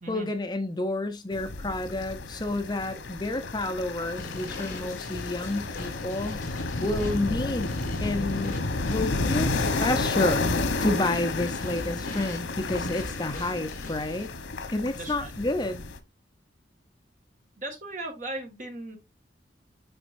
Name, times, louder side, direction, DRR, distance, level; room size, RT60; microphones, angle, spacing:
voice 1, 0.1-6.4 6.8-7.7 8.0-8.6 8.9-10.5 10.8-14.3 14.7-15.8, left 2 dB, 20° left, 0.6 m, -29 dB
sound 1, 1.3-16.0, left 3 dB, 85° left, 1.0 m, -31 dB
sound 2, 4.2-14.3, left 2 dB, 45° left, 2.0 m, -42 dB
voice 2, 15.0-15.3 17.6-19.0, right 2 dB, 40° right, 1.8 m, -37 dB
7.8 x 5.3 x 2.5 m
head